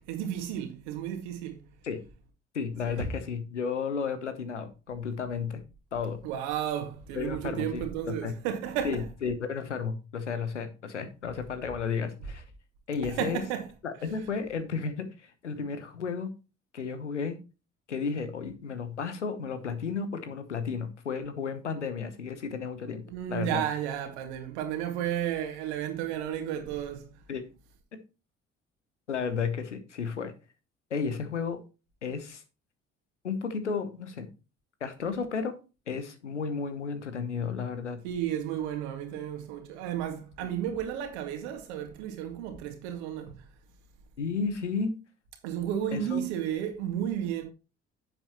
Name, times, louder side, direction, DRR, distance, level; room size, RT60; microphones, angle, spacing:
voice 1, 0.1-1.6 2.8-3.1 6.2-9.0 13.0-13.7 23.1-27.1 38.0-43.4 45.4-47.4, right 10 dB, 70° right, 2.1 m, -33 dB
voice 2, 2.5-5.6 5.9-6.2 7.1-8.3 8.8-12.4 12.9-13.4 13.8-15.1 15.4-16.3 16.7-17.4 17.9-23.6 27.3-27.4 29.1-30.3 30.9-31.6 32.0-32.4 33.2-34.3 34.8-35.5 35.9-38.0 44.2-45.0 45.9-46.2, left 5 dB, 90° left, 1.0 m, -33 dB
10.0 x 7.8 x 3.0 m
figure-of-eight pair, 50°, 34 cm